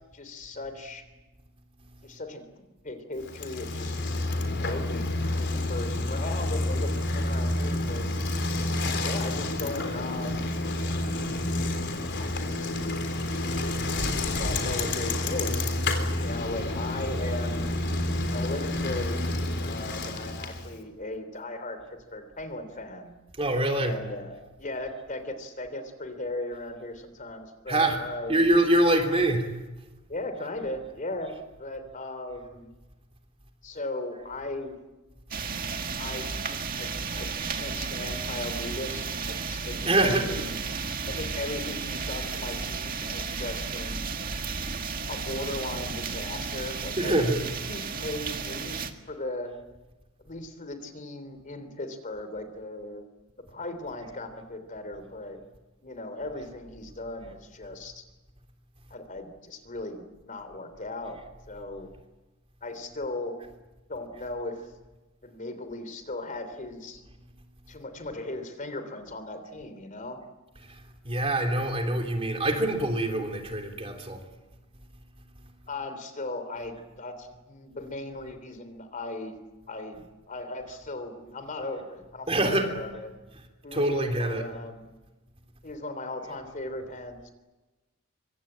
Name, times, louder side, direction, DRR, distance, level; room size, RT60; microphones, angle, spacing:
voice 1, 0.1-1.0 2.0-4.0 4.6-8.0 9.0-10.6 11.9-12.8 14.4-15.8 16.1-17.7 18.3-19.2 19.6-23.1 23.8-28.5 30.1-32.7 33.6-34.7 36.0-40.6 41.1-44.1 45.1-48.8 49.1-49.5 50.2-53.0 53.5-55.4 55.8-58.0 58.9-61.2 61.5-61.9 62.6-63.4 63.9-64.6 65.2-67.0 67.7-70.2 75.7-79.4 79.7-83.1 83.6-84.9 85.6-87.3, left 2 dB, 40° left, 3.2 m, -37 dB
Bicycle, 3.2-20.8, left 2 dB, 55° left, 3.7 m, -29 dB
voice 2, 23.4-24.0 27.7-28.0 28.3-29.6 39.8-40.4 47.0-47.4 70.6-74.2 82.3-82.7 83.7-84.4, right 1 dB, 30° right, 3.3 m, -25 dB
sound 1, 35.3-48.9, right 5 dB, 45° right, 1.9 m, -33 dB
24.5 x 24.5 x 8.8 m
head